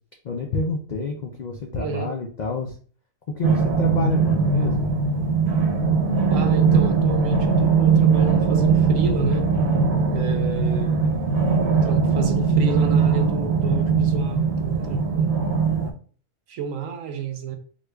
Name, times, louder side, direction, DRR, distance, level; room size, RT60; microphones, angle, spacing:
voice 1, 0.2-2.7 3.3-4.9, left 3 dB, 75° left, 0.4 m, -28 dB
voice 2, 1.7-2.1 6.3-9.5 10.1-11.2 11.7-15.4 16.5-17.6, right 6 dB, 85° right, 1.0 m, -31 dB
sound 1, 3.4-15.9, right 5 dB, 60° right, 0.9 m, -20 dB
4.6 x 2.4 x 2.3 m
omnidirectional pair, 1.4 m